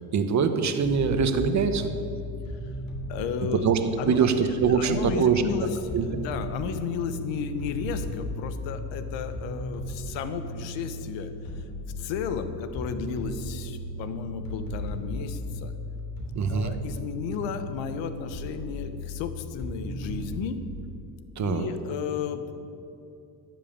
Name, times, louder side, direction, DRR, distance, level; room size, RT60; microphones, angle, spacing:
voice 1, 0.1-1.9 3.5-3.8 4.0-5.4 5.9-6.2 16.3-16.7 21.4-21.7, right 6 dB, 40° right, 8 dB, 1.2 m, -23 dB
sound 1, 0.8-20.5, left 1 dB, 50° left, 3.2 m, -36 dB
voice 2, 3.1-3.7 4.0-4.3 4.7-11.3 12.0-15.7 16.5-20.6 21.4-22.5, left 7 dB, 90° left, 10 dB, 1.2 m, -33 dB
12.5 x 7.6 x 8.9 m, 2.6 s
cardioid pair, 115°, 43 cm